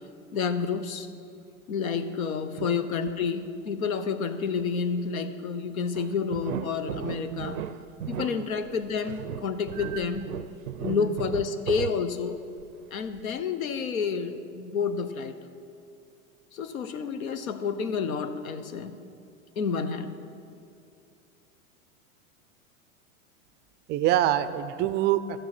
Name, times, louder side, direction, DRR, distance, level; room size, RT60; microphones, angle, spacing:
voice 1, 0.3-1.1 1.7-7.6 8.1-10.3 10.8-12.4 12.9-15.4 16.5-19.0 19.5-20.2, left 5 dB, 80° left, 10 dB, 0.9 m, -29 dB
sound 1, 5.9-12.7 13.1-13.2, right 10 dB, 90° right, 0.5 m, -36 dB
voice 2, 10.8-11.1 23.9-25.4, right 12 dB, 25° right, 13 dB, 0.3 m, -26 dB
13.5 x 6.6 x 5.9 m, 2.5 s
hypercardioid pair, 100°, 41 cm